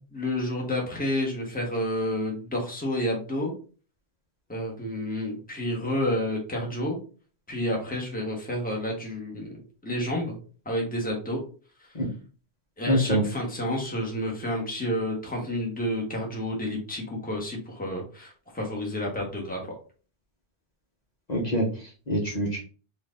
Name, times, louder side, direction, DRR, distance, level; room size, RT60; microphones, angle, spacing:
voice 1, 0.1-3.5 4.5-7.0 7.5-9.5 9.8-10.4 10.6-11.4 12.8-19.7, left 1 dB, 10° left, -1 dB, 1.2 m, -30 dB
voice 2, 12.9-13.3 21.3-22.6, equal, 40° left, -3 dB, 1.1 m, -25 dB
4.4 x 2.6 x 3.7 m, 0.37 s
omnidirectional pair, 1.1 m